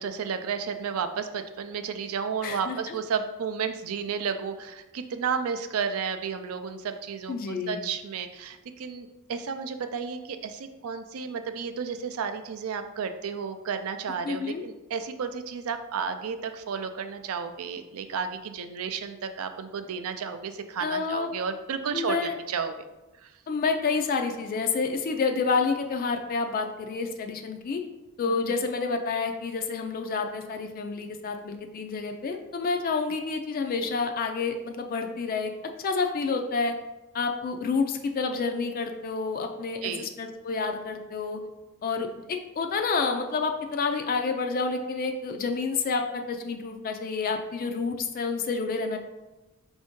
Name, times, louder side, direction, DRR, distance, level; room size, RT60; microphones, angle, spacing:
voice 1, 0.0-22.7 23.2-23.3 28.3-28.6 39.8-40.1, right 6 dB, 75° right, 8 dB, 0.4 m, -32 dB
voice 2, 2.4-3.0 7.3-7.8 14.2-14.6 20.8-21.3 21.9-22.3 23.5-27.8 28.2-35.5 35.8-36.7 37.1-41.4 41.8-49.0, left 4 dB, 40° left, 4 dB, 0.3 m, -29 dB
5.2 x 2.6 x 3.6 m, 1.1 s
head